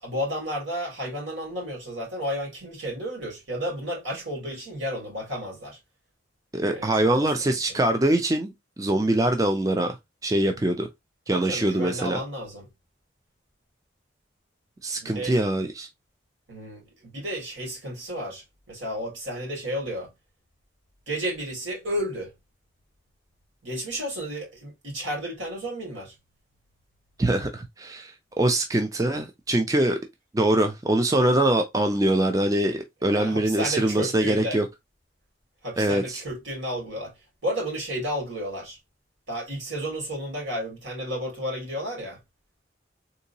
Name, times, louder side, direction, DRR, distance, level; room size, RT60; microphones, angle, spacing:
voice 1, 0.0-5.8 6.7-7.8 11.3-12.7 15.0-15.4 16.5-20.1 21.1-22.3 23.6-26.1 33.1-34.6 35.6-37.1 37.4-38.8 39.3-42.2, equal, 85° right, 2.3 m, -32 dB
voice 2, 6.5-8.5 8.8-9.9 10.2-10.9 11.3-12.2 14.8-15.9 27.2-30.0 30.3-34.7 35.8-36.2, right 1 dB, 20° right, 0.4 m, -23 dB
3.7 x 2.8 x 2.7 m
head